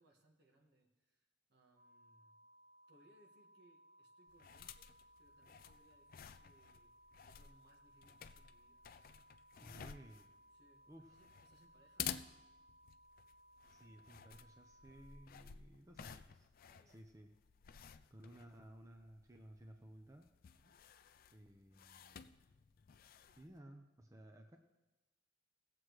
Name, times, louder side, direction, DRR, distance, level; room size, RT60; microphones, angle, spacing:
voice 1, 0.0-2.4 2.9-4.9 5.2-6.9 7.2-8.8 9.6-9.9 10.5-12.2 16.7-17.0 20.5-20.8, right 1 dB, 65° right, 1 dB, 1.6 m, -71 dB
sound 1, 1.8-15.3, right 1 dB, 35° right, 1.0 m, -66 dB
sound 2, 4.3-23.6, left 9 dB, 50° left, 0.4 m, -53 dB
voice 2, 9.6-10.2 10.9-11.2 13.7-16.5 16.9-17.3 18.1-20.3 21.3-22.3 23.4-24.6, right 1 dB, 20° right, 3 dB, 0.6 m, -58 dB
18.0 x 7.6 x 3.1 m, 1.1 s
head